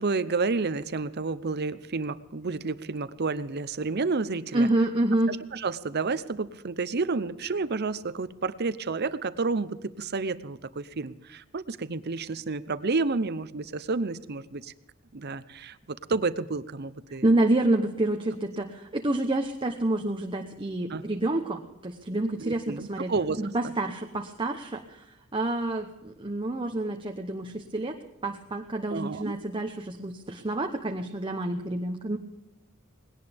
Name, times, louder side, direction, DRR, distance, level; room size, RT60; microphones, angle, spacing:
voice 1, 0.0-4.7 5.3-14.7 15.1-17.3 20.9-21.0 22.4-23.7 28.9-29.3, right 4 dB, 50° right, 14 dB, 0.7 m, -30 dB
voice 2, 4.5-5.3 17.2-23.1 23.4-25.1 25.3-28.0 28.2-32.2, right 2 dB, 25° right, 4 dB, 0.9 m, -28 dB
20.0 x 17.5 x 3.5 m, 0.98 s
head